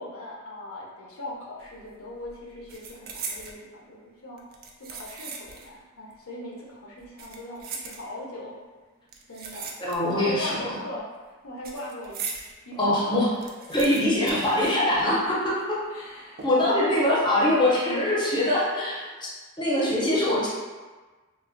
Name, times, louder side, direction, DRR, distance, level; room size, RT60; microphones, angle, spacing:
voice 1, 0.0-4.0 4.2-4.5 4.8-8.6 9.3-9.7 10.1-13.3 15.9-17.2, left 1 dB, 80° left, -3 dB, 0.6 m, -39 dB
sound 1, 1.6-1.9 2.2-3.6 4.4-5.8 6.1-6.2 7.0-8.4 9.1-10.3 10.6-12.5 12.9-13.0 13.2-15.3 15.6-15.7 16.4-16.8 17.2-17.4, right 5 dB, 45° right, 0.3 m, -39 dB
voice 2, 9.8-10.6 12.8-13.3 13.7-15.8 16.4-19.0 19.6-20.5, left 1 dB, 20° left, -6 dB, 0.6 m, -23 dB
3.1 x 2.1 x 2.5 m, 1.3 s
head